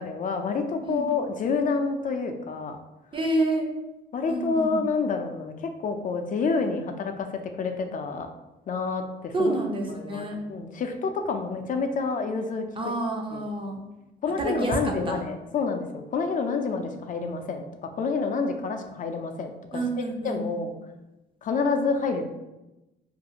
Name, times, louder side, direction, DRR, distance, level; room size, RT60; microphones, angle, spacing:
voice 1, 0.0-2.8 4.1-8.3 8.7-12.9 13.3-13.4 14.2-19.8 20.2-20.7 21.4-22.3, left 4 dB, 40° left, 6 dB, 0.4 m, -28 dB
voice 2, 3.1-3.7 4.3-4.8 9.3-10.4 12.8-13.9 14.4-15.2 19.7-20.6, right 2 dB, 25° right, 1 dB, 0.5 m, -28 dB
2.5 x 2.3 x 2.8 m, 1.0 s
cardioid pair, 90°, 20 cm